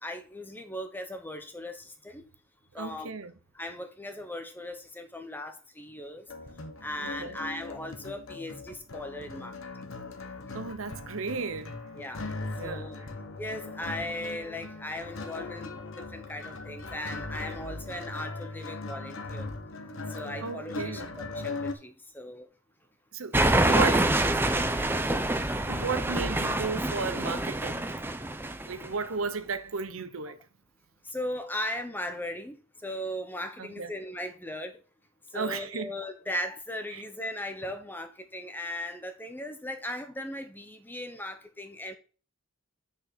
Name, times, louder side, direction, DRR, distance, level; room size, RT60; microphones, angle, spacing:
voice 1, 0.0-2.3 2.7-3.1 3.5-6.3 6.8-9.6 12.0-12.3 12.6-13.0 13.4-19.5 20.1-22.5 23.4-24.0 24.3-25.1 31.0-32.6 32.8-34.8 35.3-42.0, left 1 dB, 10° left, 1.0 m, -38 dB
voice 2, 2.7-3.3 7.0-7.4 10.5-11.8 12.6-12.9 20.4-21.1 23.1-24.1 25.7-27.9 28.7-30.4 33.6-33.9 35.3-35.9 36.9-37.0, right 4 dB, 80° right, 0.8 m, -34 dB
sound 1, 6.3-21.7, left 3 dB, 70° left, 1.2 m, -39 dB
sound 2, 23.3-28.9, right 1 dB, 10° right, 0.6 m, -26 dB
6.4 x 5.6 x 6.3 m
head